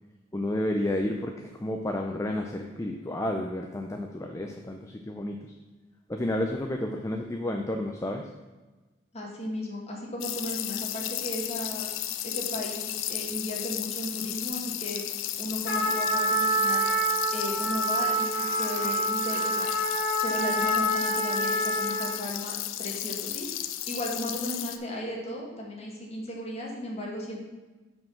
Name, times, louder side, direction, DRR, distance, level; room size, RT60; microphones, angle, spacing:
voice 1, 0.3-5.5 6.1-8.3, left 1 dB, 15° left, 3 dB, 0.4 m, -31 dB
voice 2, 9.1-11.9 12.2-15.0 15.4-16.8 17.3-19.7 20.2-27.4, left 1 dB, 30° left, -2 dB, 1.6 m, -35 dB
sound 1, 10.2-24.8, left 12 dB, 80° left, 0.5 m, -34 dB
Trumpet, 15.6-22.2, right 1 dB, 60° left, 2.3 m, -27 dB
5.6 x 5.0 x 6.3 m, 1.2 s
head